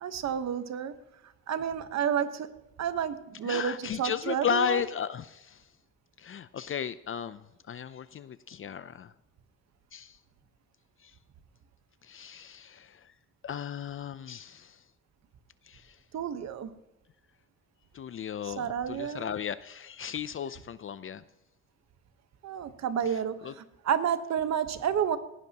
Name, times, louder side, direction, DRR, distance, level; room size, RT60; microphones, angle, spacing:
voice 1, 0.0-0.9 1.5-2.5 2.8-4.8 16.1-16.7 18.4-19.3 22.4-25.2, right 8 dB, 60° right, 10 dB, 1.2 m, -30 dB
voice 2, 3.4-5.7 6.2-9.1 9.9-10.2 11.0-11.1 12.0-13.1 13.4-14.8 15.6-16.0 17.9-21.2 23.1-23.5, left 8 dB, 45° left, 14 dB, 0.6 m, -35 dB
18.5 x 16.0 x 2.9 m, 0.90 s
cardioid pair, 90°, 30 cm